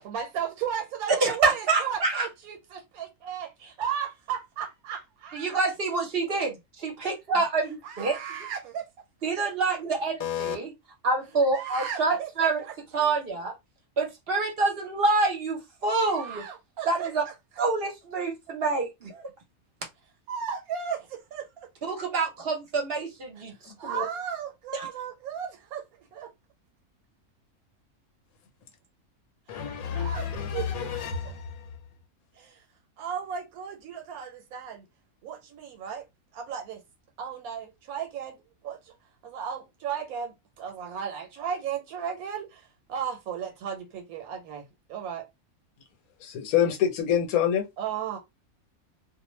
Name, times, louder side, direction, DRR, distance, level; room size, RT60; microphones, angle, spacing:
voice 1, 0.0-5.6 7.8-8.9 11.5-12.7 15.9-17.1 20.3-21.7 23.8-25.9 26.1-26.3 29.5-31.3 32.3-32.6 33.0-34.8 35.2-36.0 36.3-36.8 37.2-38.9 39.2-45.3 47.8-48.2, right 8 dB, 90° right, 1.1 m, -35 dB
voice 2, 1.2-2.3 5.3-8.2 9.2-10.7 11.0-12.6 12.9-13.5 14.0-16.4 16.9-17.2 17.6-19.3 21.8-24.0 24.7-24.9, right 3 dB, 50° right, 0.8 m, -27 dB
voice 3, 10.2-10.6 29.5-31.5 46.2-47.6, left 9 dB, 85° left, 1.2 m, -27 dB
2.5 x 2.1 x 3.1 m
omnidirectional pair, 1.5 m